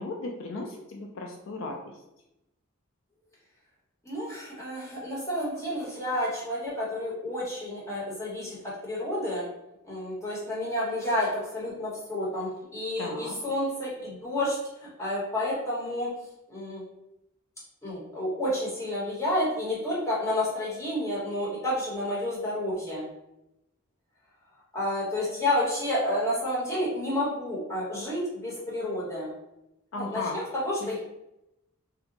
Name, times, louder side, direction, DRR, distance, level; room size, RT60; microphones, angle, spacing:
voice 1, 0.0-1.8 13.0-13.4 29.9-30.4 30.8-31.0, left 2 dB, 65° left, 1 dB, 0.4 m, -35 dB
voice 2, 4.0-8.6 8.9-9.5 9.9-14.6 15.0-16.1 16.5-16.8 17.8-23.1 24.7-29.3 30.0-31.0, left 1 dB, 15° left, -7 dB, 1.0 m, -30 dB
2.7 x 2.2 x 3.8 m, 0.88 s
head